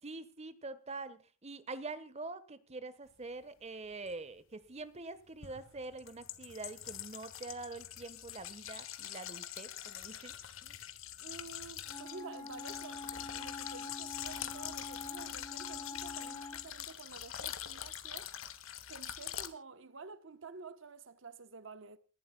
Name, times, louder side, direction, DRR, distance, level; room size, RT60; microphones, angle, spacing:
voice 1, 0.0-10.3 10.6-10.8, right 3 dB, 35° right, 1.2 m, -45 dB
sound 1, 4.1-4.2 5.4-19.5, left 11 dB, 85° left, 1.6 m, -44 dB
voice 2, 11.2-18.3 18.9-22.0, right 4 dB, 65° right, 1.0 m, -50 dB
Wind instrument woodwind instrument, 11.9-16.7, left 3 dB, 20° left, 3.6 m, -46 dB
29.0 x 11.5 x 2.2 m
head